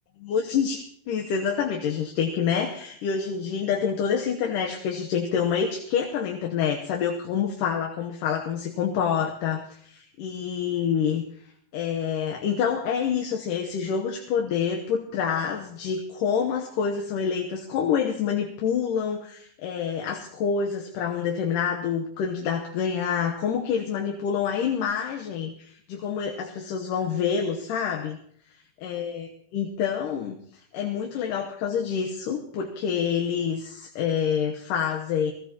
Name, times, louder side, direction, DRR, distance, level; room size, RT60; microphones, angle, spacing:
voice 1, 0.2-11.2 11.7-28.2 28.8-30.4 30.7-35.3, left 7 dB, 75° left, 1 dB, 2.5 m, -27 dB
21.0 x 16.0 x 2.9 m, 0.64 s
omnidirectional pair, 3.9 m